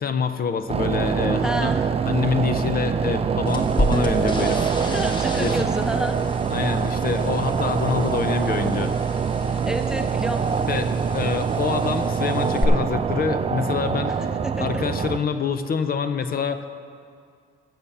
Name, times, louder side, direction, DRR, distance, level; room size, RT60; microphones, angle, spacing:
voice 1, 0.0-1.7 2.0-4.7 5.3-5.6 6.5-8.9 10.7-14.2 14.6-16.7, left 6 dB, 50° left, 10 dB, 0.6 m, -26 dB
sound 1, 0.7-15.2, right 6 dB, 30° right, 0.5 m, -24 dB
voice 2, 1.4-1.9 4.8-6.2 9.5-10.5 14.4-14.8, right 1 dB, 5° right, 7 dB, 0.8 m, -30 dB
sound 2, 3.5-12.6, equal, 25° left, 1.2 m, -32 dB
14.5 x 5.8 x 6.7 m, 2.3 s
cardioid pair, 90°, 20 cm